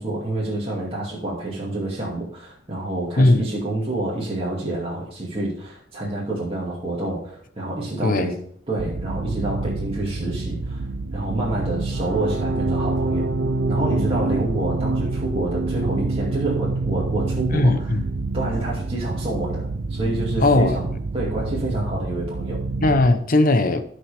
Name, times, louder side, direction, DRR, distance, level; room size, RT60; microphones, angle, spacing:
voice 1, 0.0-8.4 8.7-10.9 11.1-13.3 13.7-17.9 18.3-20.9 21.1-22.6, right 2 dB, 30° right, 2.3 m, -28 dB
voice 2, 3.1-3.5 8.0-8.3 17.5-18.0 20.4-20.8 22.8-23.8, left 2 dB, 45° left, 0.8 m, -18 dB
sound 1, 8.8-23.1, right 3 dB, 65° right, 0.6 m, -26 dB
14.5 x 5.5 x 3.4 m
head